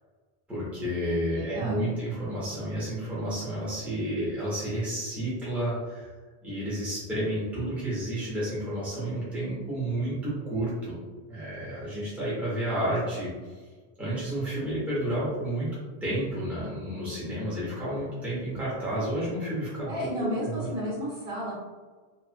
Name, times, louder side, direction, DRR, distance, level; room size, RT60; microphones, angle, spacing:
voice 1, 0.5-6.1 6.4-11.0 11.3-13.3 14.0-15.7 16.0-20.7, right 1 dB, ahead, -9 dB, 0.9 m, -31 dB
voice 2, 1.1-2.0 19.8-21.5, equal, 60° right, -8 dB, 1.5 m, -33 dB
2.9 x 2.5 x 2.5 m, 1.3 s
omnidirectional pair, 1.0 m